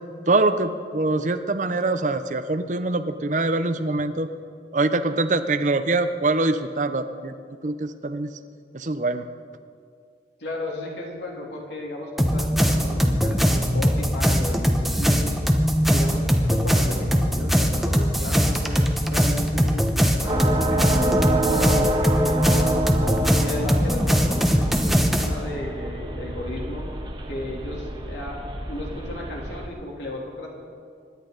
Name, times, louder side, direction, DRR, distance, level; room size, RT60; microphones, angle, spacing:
voice 1, 0.3-4.3 4.7-7.3 7.6-8.3 8.7-9.2, right 2 dB, 45° right, 10 dB, 0.6 m, -24 dB
voice 2, 10.4-15.3 15.8-22.8 23.4-26.8 27.2-28.3 28.7-30.5, left 1 dB, 80° left, -2 dB, 3.0 m, -34 dB
sound 1, 12.2-25.3, equal, ahead, 0.8 m, -21 dB
sound 2, 20.3-29.7, right 1 dB, 25° right, 1.2 m, -27 dB
25.5 x 11.0 x 3.9 m, 2.2 s
head